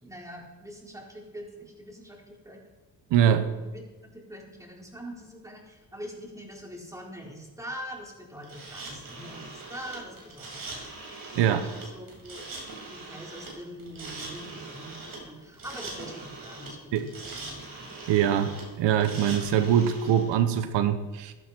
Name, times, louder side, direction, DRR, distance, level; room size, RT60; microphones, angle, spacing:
voice 1, 0.0-2.6 3.5-10.8 11.4-12.4 12.9-17.9, equal, 10° right, -1 dB, 4.2 m, -43 dB
voice 2, 3.1-3.5 11.3-11.6 16.9-17.0 18.1-18.5 18.8-21.3, right 9 dB, 85° right, 10 dB, 1.0 m, -23 dB
sound 1, 8.4-20.3, right 3 dB, 55° right, 5.8 m, -42 dB
16.0 x 11.5 x 4.5 m, 1.2 s
cardioid pair, 80°, 41 cm